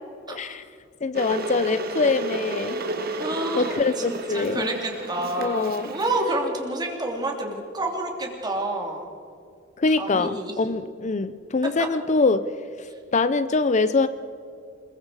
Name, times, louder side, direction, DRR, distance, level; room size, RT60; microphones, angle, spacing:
voice 1, 0.3-0.6 1.0-2.8 3.6-4.7 5.4-5.9 9.8-12.5 12.8-14.1, left 3 dB, 40° left, 13 dB, 0.5 m, -24 dB
Water / Boiling, 1.1-6.3, right 2 dB, 50° right, 1.8 m, -32 dB
voice 2, 3.2-9.0 10.0-10.5, right 1 dB, 20° right, 1 dB, 3.0 m, -29 dB
27.0 x 22.0 x 4.8 m, 2.6 s
head